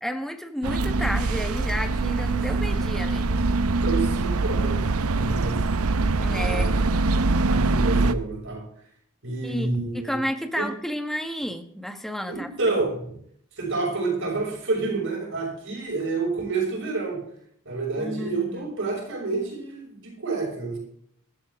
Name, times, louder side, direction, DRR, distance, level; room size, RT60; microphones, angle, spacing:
voice 1, 0.0-3.4 6.1-6.7 9.4-12.5 18.0-18.7, equal, ahead, 7 dB, 1.4 m, -31 dB
sound 1, 0.6-8.1, right 3 dB, 75° right, 0.7 m, -23 dB
voice 2, 3.8-5.6 6.3-7.0 7.5-8.7 9.2-10.2 10.6-10.7 12.3-13.1 13.6-17.2 17.6-20.8, right 3 dB, 60° right, -1 dB, 6.2 m, -29 dB
16.0 x 13.0 x 3.7 m, 0.64 s
head